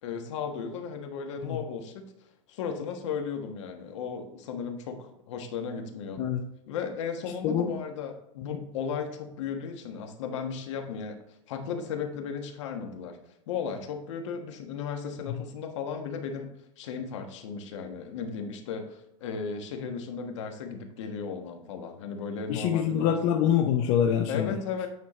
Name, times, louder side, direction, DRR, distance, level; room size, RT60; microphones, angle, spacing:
voice 1, 0.0-2.1 2.5-6.2 6.7-11.2 11.5-13.2 13.5-23.1 24.3-24.9, left 6 dB, 60° left, 5 dB, 1.4 m, -35 dB
voice 2, 22.5-24.6, left 9 dB, 35° left, 3 dB, 0.6 m, -25 dB
9.2 x 4.5 x 3.2 m, 0.83 s
supercardioid pair, 160°, 17 cm